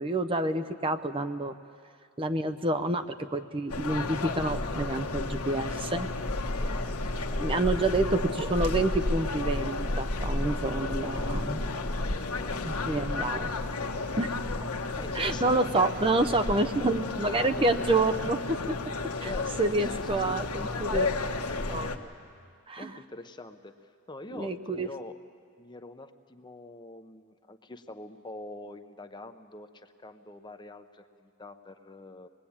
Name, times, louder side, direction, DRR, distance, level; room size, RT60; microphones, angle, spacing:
voice 1, 0.0-1.5 2.2-6.1 7.4-11.6 12.6-13.5 14.2-14.3 15.1-18.8 19.2-19.3 19.6-21.1 21.7-21.9 22.7-22.9 24.3-24.9, right 2 dB, 25° right, 8 dB, 0.7 m, -28 dB
sound 1, 3.7-22.0, left 2 dB, 80° left, 1.4 m, -32 dB
voice 2, 11.2-11.7 15.0-15.8 16.4-17.1 19.2-20.5 22.8-25.2 25.6-32.3, left 2 dB, 20° left, 8 dB, 0.8 m, -45 dB
25.0 x 21.0 x 8.7 m, 2.2 s
head